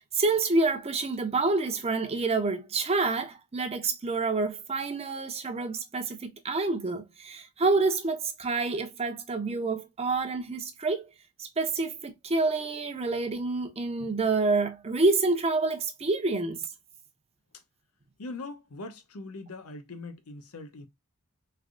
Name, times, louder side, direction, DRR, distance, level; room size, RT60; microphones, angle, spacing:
voice 1, 0.1-11.1 11.4-16.6, right 3 dB, 30° right, 0.6 m, -28 dB
voice 2, 18.2-20.9, left 2 dB, 75° left, 0.8 m, -41 dB
3.3 x 2.2 x 3.7 m
head